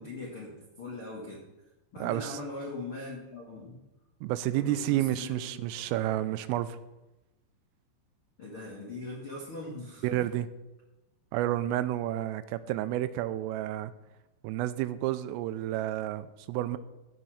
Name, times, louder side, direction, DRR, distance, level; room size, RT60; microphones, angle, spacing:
voice 1, 0.0-1.5 1.9-3.8 4.4-5.6 8.4-10.2, left 2 dB, 65° left, -3 dB, 1.3 m, -41 dB
voice 2, 2.0-2.4 4.2-6.8 10.0-10.5 11.3-13.9 14.4-16.8, right 13 dB, 90° right, 13 dB, 3.3 m, -30 dB
16.5 x 5.7 x 6.5 m, 1.0 s
omnidirectional pair, 5.8 m